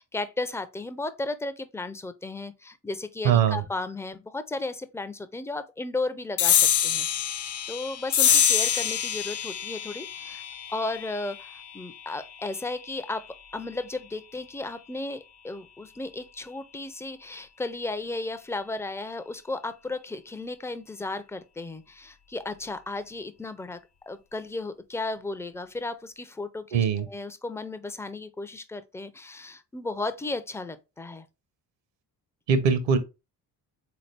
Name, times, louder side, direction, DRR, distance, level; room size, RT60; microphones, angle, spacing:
voice 1, 0.0-7.1 7.7-10.4 10.7-13.2 13.5-23.8 24.1-31.3, left 2 dB, 5° left, 0.3 m, -34 dB
voice 2, 3.2-3.6 26.7-27.1 32.5-33.0, right 7 dB, 70° right, 0.9 m, -21 dB
sound 1, 6.4-13.2, left 8 dB, 60° left, 0.8 m, -26 dB
3.7 x 2.9 x 3.3 m
hypercardioid pair, 55°, 45 cm